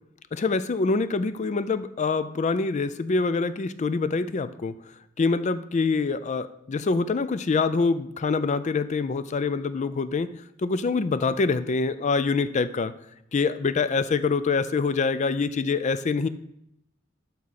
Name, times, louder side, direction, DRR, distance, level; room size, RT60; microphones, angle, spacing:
voice 1, 0.3-4.7 5.2-10.3 10.6-12.9 13.3-16.3, left 4 dB, 35° left, 14 dB, 0.4 m, -25 dB
12.0 x 4.2 x 4.1 m, 0.76 s
head